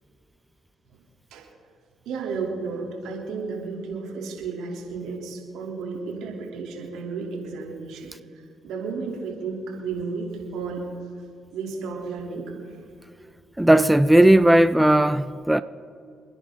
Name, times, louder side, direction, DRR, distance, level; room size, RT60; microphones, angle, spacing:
voice 1, 2.0-10.8 11.5-12.8, right 4 dB, 80° right, 3.2 m, -33 dB
voice 2, 13.6-15.6, right 1 dB, 10° right, 0.5 m, -16 dB
27.5 x 10.0 x 3.8 m
supercardioid pair, 55°, 0 cm